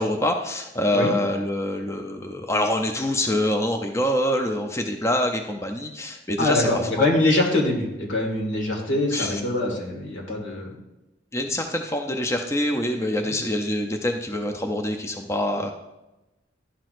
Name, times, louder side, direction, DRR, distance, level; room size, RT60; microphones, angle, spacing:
voice 1, 0.0-6.7 7.0-7.1 9.1-9.4 11.3-15.7, left 1 dB, 15° left, 4 dB, 0.5 m, -25 dB
voice 2, 6.4-10.8 13.1-13.3, left 2 dB, 85° left, 0 dB, 1.9 m, -24 dB
11.5 x 6.0 x 2.5 m, 0.98 s
head